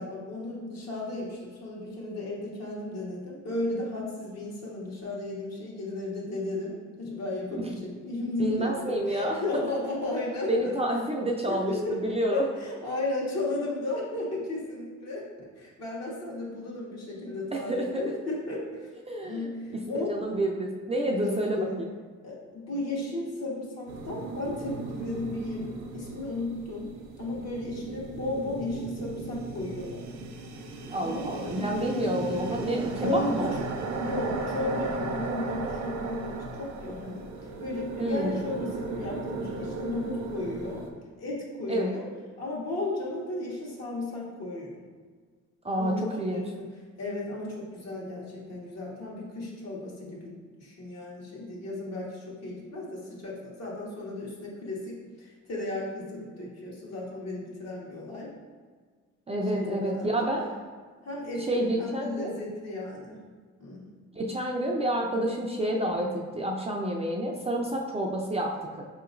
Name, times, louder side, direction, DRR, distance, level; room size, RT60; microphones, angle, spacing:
voice 1, 0.0-10.7 11.5-12.0 12.3-15.3 15.6-18.9 19.2-20.1 21.2-21.8 22.2-25.7 25.9-26.9 27.2-30.1 31.0-31.7 32.9-33.3 34.0-37.2 37.6-40.8 41.2-42.1 42.4-44.7 45.8-46.7 47.0-58.3 59.5-60.3 61.0-63.2 63.6-63.8, left 2 dB, 60° left, -4 dB, 1.3 m, -34 dB
voice 2, 8.4-9.7 10.5-12.5 17.5-18.0 19.1-21.9 30.9-33.5 38.0-38.5 41.7-41.9 45.6-46.5 59.3-60.5 61.5-62.3 64.1-68.8, right 1 dB, 20° right, 0 dB, 0.4 m, -29 dB
sound 1, 23.9-40.9, right 3 dB, 65° right, 0.6 m, -36 dB
5.2 x 2.9 x 2.5 m, 1.5 s
cardioid pair, 90°, 30 cm